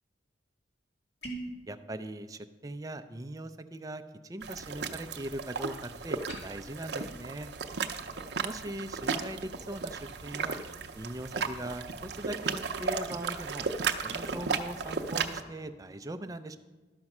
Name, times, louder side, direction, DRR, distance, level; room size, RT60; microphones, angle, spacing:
sound 1, 1.2-1.6 6.2-6.4, right 2 dB, 60° left, 2.4 m, -39 dB
voice 1, 1.7-7.5 8.4-10.6 10.9-13.7 14.0-16.6, right 1 dB, 20° right, 9 dB, 0.4 m, -40 dB
sound 2, 4.4-15.4, right 5 dB, 65° right, 0.6 m, -35 dB
12.0 x 5.3 x 6.0 m, 1.3 s
head